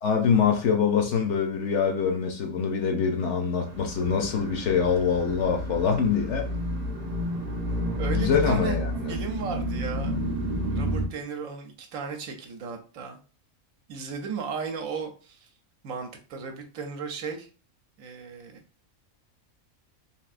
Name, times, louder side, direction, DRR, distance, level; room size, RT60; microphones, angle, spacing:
voice 1, 0.0-6.5 8.1-9.1, left 6 dB, 65° left, 0.8 m, -24 dB
sound 1, 3.6-11.1, equal, 50° right, 0.5 m, -30 dB
voice 2, 8.0-8.8 9.1-10.2 10.7-13.2 13.9-15.5 15.8-17.5 18.0-18.6, right 5 dB, 75° right, 1.0 m, -35 dB
3.4 x 2.6 x 2.4 m
omnidirectional pair, 1.5 m